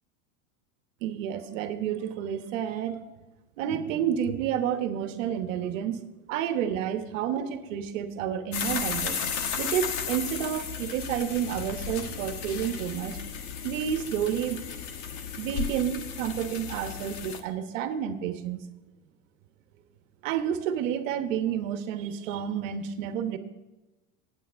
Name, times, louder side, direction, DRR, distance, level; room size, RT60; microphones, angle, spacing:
voice 1, 1.0-3.0 3.6-9.2 9.6-13.2 13.6-14.6 15.4-18.6 20.2-23.4, right 9 dB, 70° right, 9 dB, 1.2 m, -30 dB
sound 1, 8.5-17.4, left 6 dB, 45° left, 1.2 m, -34 dB
9.4 x 8.6 x 5.7 m, 1.1 s
supercardioid pair, 120°, 40 cm